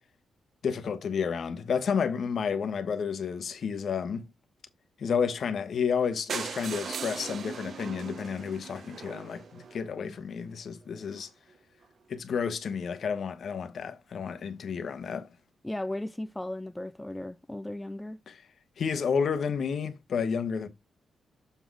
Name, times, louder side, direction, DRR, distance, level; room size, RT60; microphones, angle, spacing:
voice 1, 0.6-4.3 5.0-11.3 12.1-15.3 18.3-18.4 18.8-20.7, left 6 dB, 60° left, 1.2 m, -31 dB
sound 1, 6.3-10.2 10.8-10.9 11.2-11.3 11.5-11.6 11.8-11.9, right 6 dB, 60° right, 0.9 m, -39 dB
voice 2, 15.6-18.2, left 1 dB, 10° left, 0.3 m, -36 dB
7.0 x 4.0 x 4.6 m
cardioid pair, 105°, 0 cm